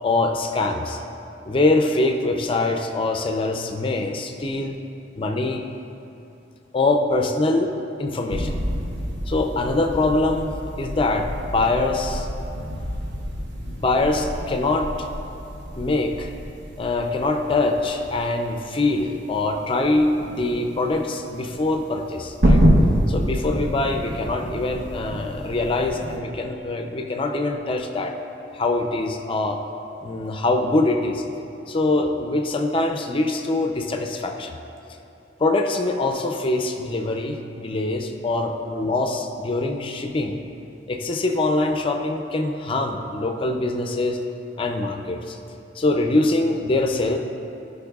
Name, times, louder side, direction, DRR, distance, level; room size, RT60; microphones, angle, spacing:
voice 1, 0.0-1.0 1.4-4.8 5.2-5.6 6.7-8.6 9.3-12.3 13.6-14.9 15.7-16.3 16.8-22.6 23.1-28.1 28.5-29.6 30.0-31.2 31.7-34.6 35.4-40.4 40.9-44.2 44.6-45.4 45.8-47.2, left 2 dB, 30° left, 4 dB, 0.4 m, -23 dB
sound 1, 8.3-26.2, equal, 70° right, 0.9 m, -27 dB
15.5 x 5.3 x 2.3 m, 2.8 s
head